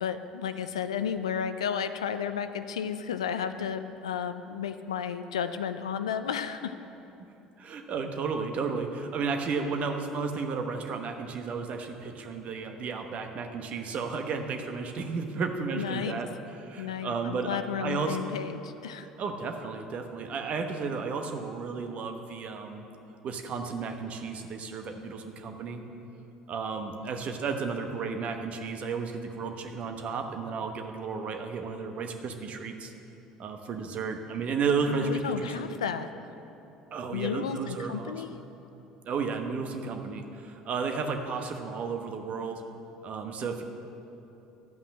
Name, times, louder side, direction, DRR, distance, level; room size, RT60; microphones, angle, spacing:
voice 1, 0.0-6.7 15.7-16.2 16.8-19.1 34.9-36.1 37.1-38.3, left 8 dB, 80° left, 10 dB, 0.4 m, -33 dB
voice 2, 7.6-16.3 16.6-18.2 19.0-22.9 23.2-25.8 26.5-32.9 33.4-35.8 36.9-38.4 39.1-42.6 43.0-43.6, right 5 dB, 45° right, 5 dB, 1.0 m, -33 dB
12.0 x 5.5 x 7.4 m, 2.9 s
figure-of-eight pair, 60°, 3 cm